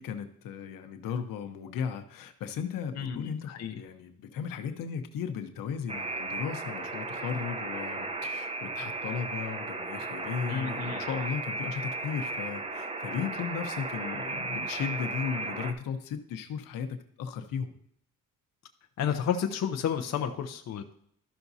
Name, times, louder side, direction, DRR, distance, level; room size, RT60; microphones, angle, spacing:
voice 1, 0.0-17.7, left 7 dB, 85° left, 7 dB, 1.0 m, -36 dB
voice 2, 2.9-3.7 10.5-11.0 19.0-20.9, left 8 dB, 55° left, 5 dB, 0.8 m, -31 dB
Alarm, 5.9-15.7, right 3 dB, 20° right, 0.8 m, -35 dB
12.5 x 5.9 x 2.8 m, 0.69 s
cardioid pair, 125°, 32 cm